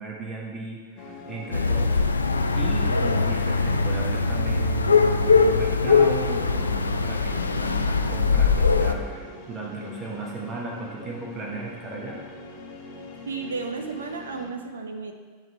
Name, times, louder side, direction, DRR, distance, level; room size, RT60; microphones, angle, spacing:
voice 1, 0.0-2.0 2.5-12.2, right 3 dB, 20° right, -3 dB, 1.0 m, -36 dB
sound 1, 1.0-14.5, left 2 dB, 40° left, 1.0 m, -43 dB
sound 2, 1.5-8.9, left 4 dB, 80° left, 0.3 m, -21 dB
voice 2, 13.3-15.1, right 4 dB, 70° right, 5 dB, 0.5 m, -33 dB
9.0 x 3.3 x 4.3 m, 1.5 s
figure-of-eight pair, 90°, 0 cm